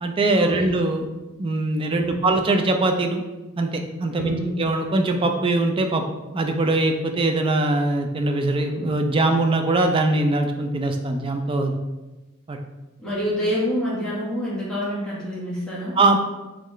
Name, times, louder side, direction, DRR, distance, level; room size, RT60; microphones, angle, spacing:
voice 1, 0.0-1.1 1.4-3.2 3.6-6.0 6.3-11.8 12.5-12.6 16.0-16.2, right 2 dB, 25° right, 4 dB, 0.3 m, -22 dB
voice 2, 1.9-2.2 4.1-4.6 13.0-16.0, equal, 5° left, -9 dB, 1.2 m, -27 dB
3.7 x 3.1 x 3.1 m, 1.1 s
head